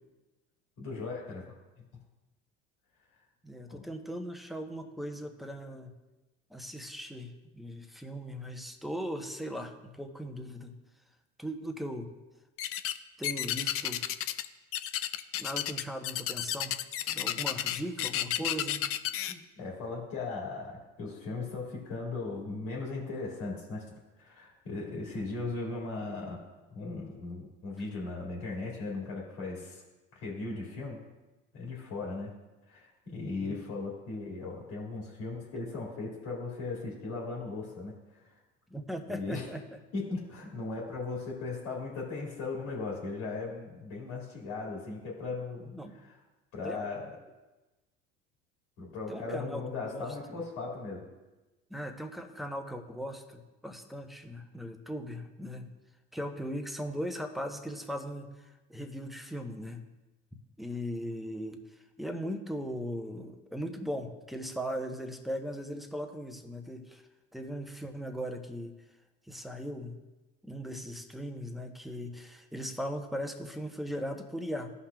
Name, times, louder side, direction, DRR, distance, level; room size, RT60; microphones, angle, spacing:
voice 1, 0.8-1.4 3.7-3.8 19.3-26.4 26.7-29.8 30.1-31.0 31.5-32.3 32.7-38.3 39.1-39.5 39.9-45.7 46.0-46.2 46.5-47.1 48.8-51.0, left 3 dB, 75° left, -3 dB, 2.1 m, -38 dB
voice 2, 3.4-5.9 6.5-10.7 11.4-12.1 13.2-14.0 15.4-16.7 17.0-18.9 33.3-33.6 38.7-39.6 45.7-46.0 46.6-46.9 49.1-50.2 51.7-55.8 56.1-59.8 60.6-67.0 67.3-68.7 69.3-70.0 70.4-74.7, equal, ahead, 4 dB, 0.9 m, -38 dB
sound 1, 12.6-13.0 13.2-14.5 14.7-19.3, left 12 dB, 45° left, 0.4 m, -32 dB
14.5 x 5.5 x 2.3 m, 1.1 s
hypercardioid pair, 80°, 31 cm